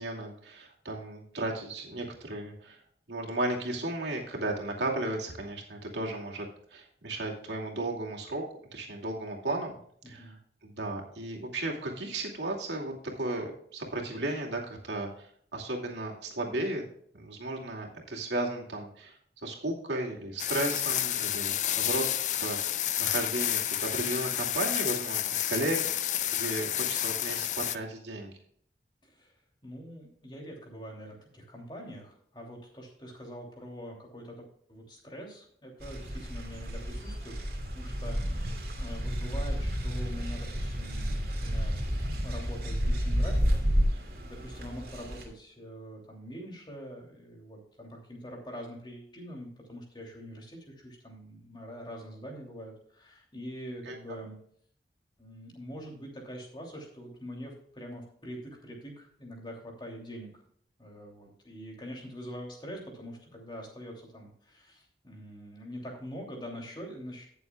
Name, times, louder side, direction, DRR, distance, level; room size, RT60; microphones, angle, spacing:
voice 1, 0.0-2.8 3.1-6.5 6.7-8.4 8.7-9.8 10.1-10.4 10.6-16.8 17.1-19.2 19.4-22.0 22.4-28.3 53.9-54.0, right 2 dB, 80° right, 0 dB, 2.6 m, -34 dB
voice 2, 10.0-10.4 29.0-29.3 29.6-37.4 37.7-43.6 44.0-54.4 55.2-60.4 60.8-67.3, equal, 25° left, 0 dB, 2.9 m, -44 dB
sound 1, 20.4-27.8, left 12 dB, 45° left, 0.5 m, -30 dB
sound 2, 35.8-45.2, equal, 55° right, 2.6 m, -31 dB
18.0 x 7.0 x 2.4 m, 0.63 s
head